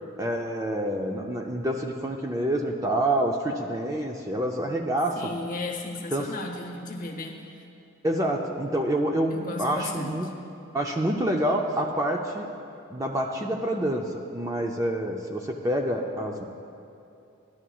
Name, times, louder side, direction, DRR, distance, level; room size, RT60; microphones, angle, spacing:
voice 1, 0.2-5.3 6.1-6.3 8.0-10.3 10.7-12.5 12.9-16.4, right 1 dB, 15° right, 2 dB, 0.3 m, -27 dB
voice 2, 5.1-7.4 9.3-10.3, left 3 dB, 40° left, 2 dB, 0.8 m, -35 dB
14.0 x 11.0 x 2.3 m, 2.6 s
head